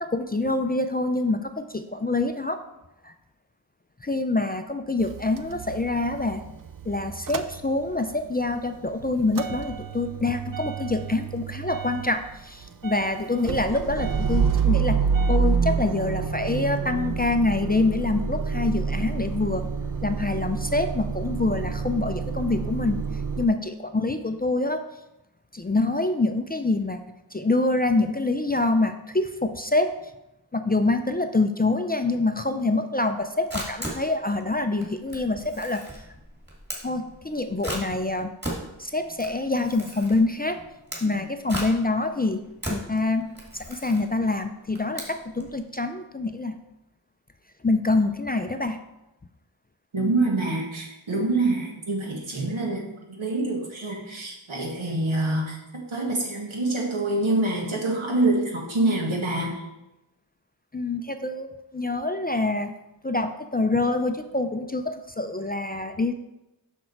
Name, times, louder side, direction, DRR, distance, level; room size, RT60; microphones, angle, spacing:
voice 1, 0.0-2.6 3.0-3.1 4.0-6.4 6.8-19.6 20.0-23.0 23.4-24.8 25.5-27.0 27.3-29.9 30.5-35.8 36.8-38.3 38.8-40.6 41.0-42.4 42.7-43.3 43.6-46.6 47.6-48.8 60.7-62.7 63.0-66.1, left 2 dB, 20° left, 7 dB, 0.4 m, -26 dB
Motor vehicle (road) / Engine starting / Idling, 5.0-8.2 8.5-23.5, right 6 dB, 45° right, 0.5 m, -28 dB
Camera, 33.1-45.5, right 1 dB, 20° right, 2.2 m, -37 dB
voice 2, 49.9-52.8 53.2-59.5, right 2 dB, 85° right, -1 dB, 1.8 m, -26 dB
6.3 x 6.0 x 4.5 m, 0.94 s
wide cardioid pair, 75°, 46 cm